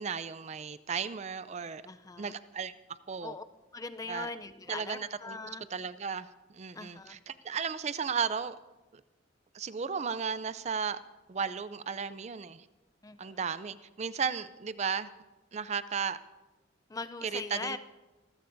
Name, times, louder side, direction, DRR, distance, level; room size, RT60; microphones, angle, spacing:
voice 1, 0.0-1.8 2.2-2.7 3.1-3.4 4.1-4.3 4.7-5.4 5.7-8.6 9.5-11.0 11.3-12.6 13.2-15.1 15.5-16.2 17.2-17.8, right 6 dB, 35° right, 14 dB, 0.4 m, -34 dB
voice 2, 1.8-2.3 3.2-3.4 3.7-5.7 6.7-7.2 13.0-13.4 16.9-17.8, left 3 dB, 20° left, 10 dB, 0.4 m, -41 dB
26.0 x 15.0 x 2.6 m, 1.1 s
head